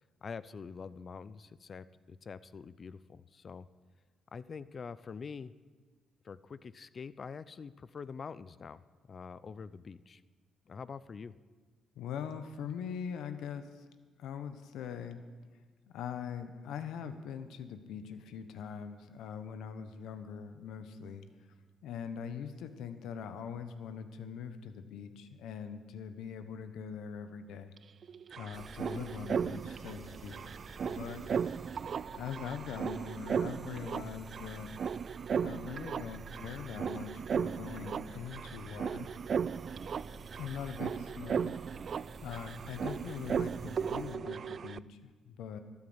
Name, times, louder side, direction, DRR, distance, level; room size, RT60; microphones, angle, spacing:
voice 1, 0.2-3.7 4.3-5.5 6.2-8.8 9.1-10.2 10.7-11.3, left 5 dB, 45° left, 16 dB, 0.5 m, -45 dB
voice 2, 12.0-13.8 14.2-15.2 15.9-21.2 21.8-27.7 28.4-30.4 30.8-31.3 32.1-34.7 35.3-39.1 40.4-41.6 42.2-45.6, left 7 dB, 85° left, 9 dB, 1.0 m, -42 dB
sound 1, 27.8-27.9 28.0-44.8, right 7 dB, 50° right, 0.3 m, -37 dB
sound 2, 28.5-44.2, right 3 dB, 30° right, 1.8 m, -50 dB
13.0 x 9.7 x 8.0 m, 1.4 s
cardioid pair, 90°, 0 cm